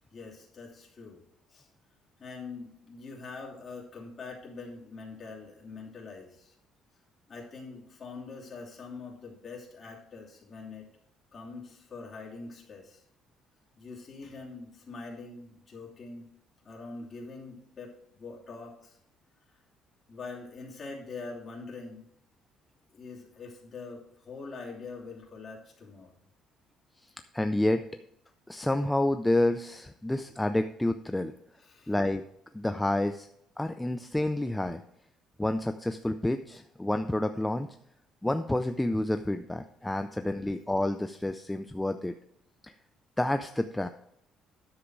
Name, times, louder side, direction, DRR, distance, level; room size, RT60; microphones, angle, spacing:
voice 1, 0.1-1.2 1.5-1.7 2.2-6.5 7.3-10.9 11.3-13.0 13.8-16.3 16.6-19.0 20.1-22.1 22.9-26.1 31.6-31.9 39.8-40.0, left 4 dB, 35° left, -3 dB, 2.9 m, -44 dB
voice 2, 27.3-27.8 28.5-31.3 31.9-32.2 32.5-33.3 33.6-34.8 35.4-37.7 38.2-42.1 42.6-42.7 43.2-43.9, left 1 dB, 5° left, 8 dB, 0.4 m, -29 dB
10.0 x 7.2 x 4.7 m, 0.73 s
cardioid pair, 125°, 0 cm